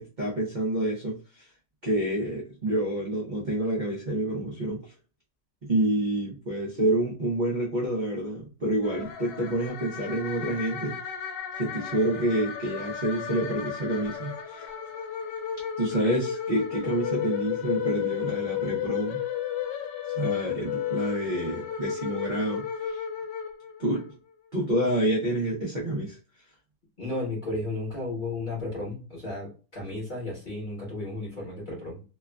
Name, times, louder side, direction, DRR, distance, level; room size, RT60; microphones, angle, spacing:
voice 1, 0.0-1.5 1.8-4.9 5.6-11.0 11.6-14.7 15.8-19.2 20.1-23.0 23.8-24.0 24.5-26.2, right 1 dB, 65° right, -3 dB, 0.4 m, -28 dB
sound 1, 8.8-24.1, left 9 dB, 90° left, 1.2 m, -33 dB
voice 2, 27.0-32.0, left 2 dB, 30° left, -5 dB, 1.1 m, -34 dB
3.0 x 2.3 x 2.2 m, 0.35 s
omnidirectional pair, 1.9 m